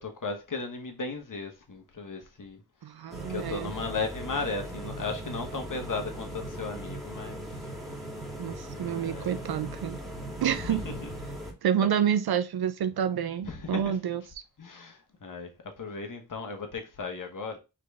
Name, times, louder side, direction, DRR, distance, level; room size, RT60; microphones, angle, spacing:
voice 1, 0.0-2.6 3.3-7.4 8.9-9.4 10.5-11.0 11.8-11.9 13.4-13.8 14.6-17.6, left 4 dB, 50° left, 1.3 m, -36 dB
voice 2, 2.8-3.7 8.4-10.0 10.4-10.8 11.6-14.2, right 9 dB, 70° right, 0.5 m, -28 dB
sound 1, 3.1-11.5, right 1 dB, ahead, 1.8 m, -39 dB
4.0 x 3.2 x 3.5 m
cardioid pair, 45°, 39 cm